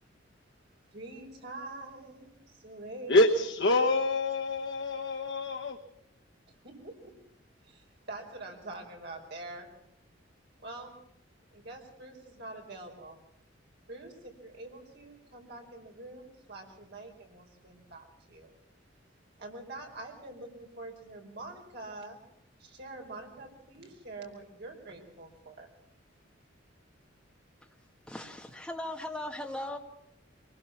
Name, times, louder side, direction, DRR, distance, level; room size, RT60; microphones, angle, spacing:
voice 1, 0.9-3.3 6.6-7.1 7.6-9.7 10.6-11.0 11.5-13.2 13.9-18.5 19.4-22.2 22.6-25.7, right 2 dB, 60° right, 2 dB, 4.7 m, -45 dB
voice 2, 3.1-5.8, left 2 dB, 65° left, 3 dB, 1.1 m, -26 dB
voice 3, 28.1-29.8, left 1 dB, 5° left, 2 dB, 1.9 m, -38 dB
23.5 x 20.5 x 6.0 m, 0.75 s
head